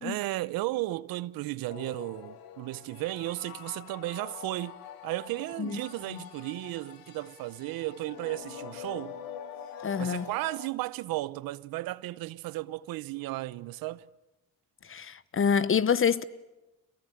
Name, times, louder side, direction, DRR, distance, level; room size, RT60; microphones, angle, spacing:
voice 1, 0.0-4.7 5.0-9.2 10.0-14.1, right 18 dB, 80° right, 0.8 m, -34 dB
sound 1, 1.7-10.7, left 9 dB, 80° left, 1.9 m, -45 dB
voice 2, 9.8-10.3 14.9-16.2, left 7 dB, 35° left, 1.1 m, -26 dB
27.5 x 22.0 x 9.1 m
cardioid pair, 85°, 35 cm